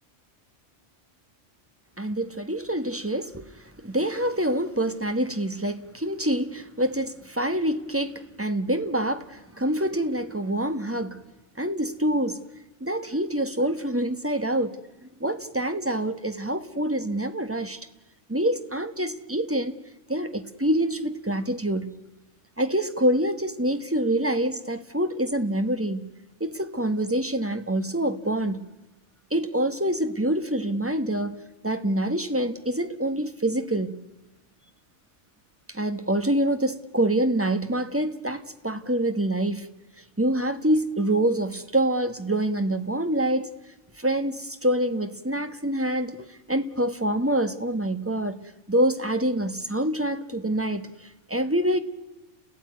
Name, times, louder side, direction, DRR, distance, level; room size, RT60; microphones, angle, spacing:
voice 1, 2.0-11.2 11.6-12.4 12.8-14.8 15.2-17.9 18.3-19.7 20.1-21.9 22.6-26.1 26.4-28.6 29.3-34.0 35.7-39.7 40.2-43.5 44.0-51.8, right 1 dB, 10° right, 1.3 m, -26 dB
30.0 x 17.0 x 9.5 m
omnidirectional pair, 1.2 m